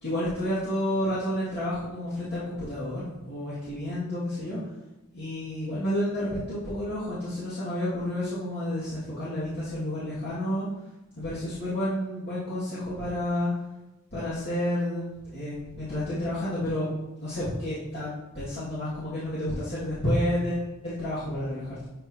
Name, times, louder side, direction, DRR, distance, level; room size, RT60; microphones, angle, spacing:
voice 1, 0.0-4.6 5.1-10.7 11.2-13.5 14.1-16.9 17.2-18.1 18.3-21.8, left 1 dB, 50° left, -11 dB, 2.3 m, -30 dB
12.0 x 4.5 x 2.9 m, 1.0 s
head